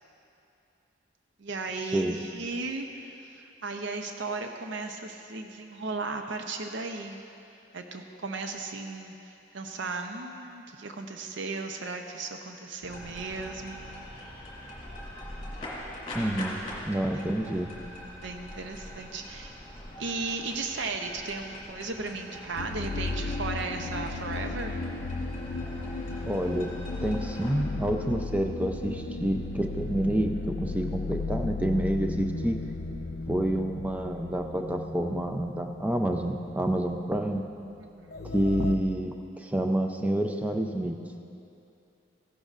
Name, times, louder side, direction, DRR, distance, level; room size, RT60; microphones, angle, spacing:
voice 1, 1.4-7.2 7.7-14.1 17.1-17.2 18.2-19.6 20.0-24.8 37.8-38.3, right 3 dB, 65° right, 4 dB, 0.6 m, -36 dB
sound 1, 12.8-27.5, left 1 dB, 30° left, 2.3 m, -43 dB
voice 2, 16.1-16.6 16.9-17.7 26.2-26.7 27.0-32.6 33.3-37.4 38.3-41.0, right 1 dB, 5° right, 3 dB, 0.5 m, -28 dB
sound 2, 22.6-37.3 37.6-37.7 38.1-38.8, left 3 dB, 50° left, 0.5 m, -35 dB
15.5 x 11.5 x 2.5 m, 2.7 s
head